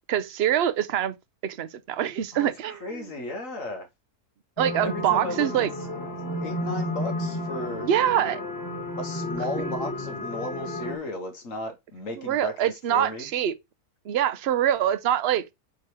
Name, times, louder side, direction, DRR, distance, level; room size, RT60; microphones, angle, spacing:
voice 1, 0.1-1.1 1.4-3.1 4.6-5.7 7.8-8.4 12.2-13.5 14.1-15.5, right 10 dB, 55° right, 0.8 m, -25 dB
voice 2, 2.3-3.9 4.8-7.9 9.0-12.5 12.9-13.3, left 2 dB, 60° left, 1.5 m, -35 dB
sound 1, 4.6-11.0, left 1 dB, 10° left, 1.6 m, -32 dB
8.0 x 3.2 x 4.8 m
omnidirectional pair, 1.6 m